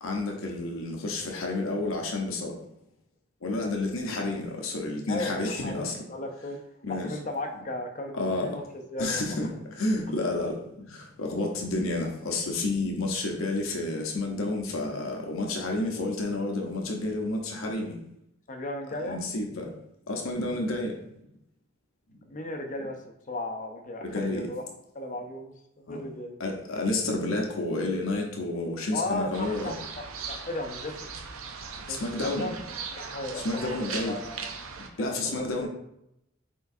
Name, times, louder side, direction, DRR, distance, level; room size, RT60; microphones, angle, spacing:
voice 1, 0.0-2.5 3.4-6.0 6.8-7.1 8.1-8.6 9.0-10.6 10.9-17.9 19.0-19.7 20.1-20.9 24.0-24.5 25.9-26.0 26.4-29.7 31.9-32.5 33.3-34.2 35.0-35.7, left 2 dB, 85° left, 1 dB, 0.8 m, -30 dB
voice 2, 5.1-6.6 6.9-9.2 18.5-19.2 22.3-23.0 23.3-24.6 25.0-26.4 28.9-29.7 30.3-31.1 31.9-32.5 33.0-34.5 34.9-35.7, left 1 dB, 40° left, 4 dB, 0.5 m, -35 dB
sound 1, 29.3-34.9, right 5 dB, 85° right, 0.6 m, -39 dB
4.5 x 4.4 x 2.6 m, 0.80 s
head